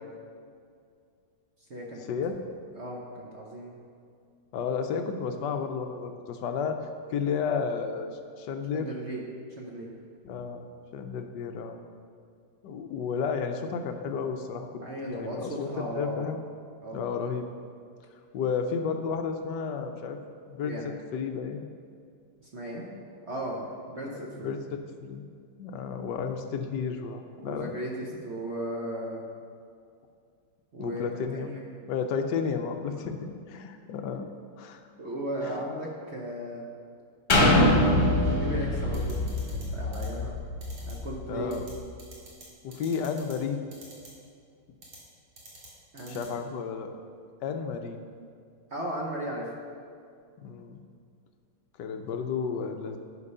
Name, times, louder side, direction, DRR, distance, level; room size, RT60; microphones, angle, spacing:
voice 1, 1.7-2.0 2.7-3.8 8.7-9.2 9.6-9.9 14.8-16.3 16.8-17.0 20.6-20.9 22.4-22.9 23.3-24.5 27.3-29.2 30.7-31.0 31.3-31.7 35.0-36.7 38.1-39.2 39.5-40.4 40.8-41.5 42.9-43.0 45.9-46.3 48.7-49.5, right 1 dB, 45° right, -2 dB, 0.9 m, -36 dB
voice 2, 4.5-6.8 7.1-8.1 8.4-8.9 10.2-10.6 10.9-11.8 12.6-14.7 15.0-16.4 16.9-17.5 18.3-20.2 20.5-20.7 21.1-21.6 24.1-25.2 25.6-27.7 30.8-31.6 31.9-34.2 34.6-34.8 41.3-41.6 42.6-43.6 46.1-46.9 47.4-48.0 50.4-50.8 51.8-53.0, left 6 dB, 70° left, 6 dB, 1.1 m, -32 dB
sound 1, 37.3-41.1 41.6-41.7, left 1 dB, 35° left, 1.2 m, -24 dB
sound 2, 38.9-39.6 39.9-40.1 40.6-40.9 41.5-41.7 42.0-42.4 42.7-43.3 43.7-44.1 44.8-45.0 45.4-45.7 46.0-46.3, right 2 dB, 75° right, 3.0 m, -48 dB
11.0 x 5.2 x 5.5 m, 2.3 s
omnidirectional pair, 2.3 m